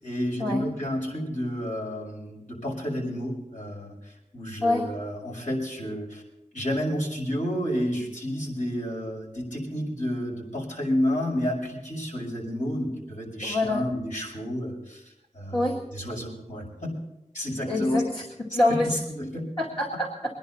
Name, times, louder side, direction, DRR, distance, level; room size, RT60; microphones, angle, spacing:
voice 1, 0.0-4.0 4.3-6.2 6.5-15.0 15.3-16.9 17.3-18.0 18.8-19.4, equal, 65° left, -3 dB, 6.0 m, -30 dB
voice 2, 13.4-13.8 15.5-15.8 17.7-18.2 18.5-19.0 19.6-20.4, left 2 dB, 40° left, -3 dB, 2.0 m, -25 dB
22.0 x 10.5 x 4.2 m, 0.88 s
wide cardioid pair, 60°, 14 cm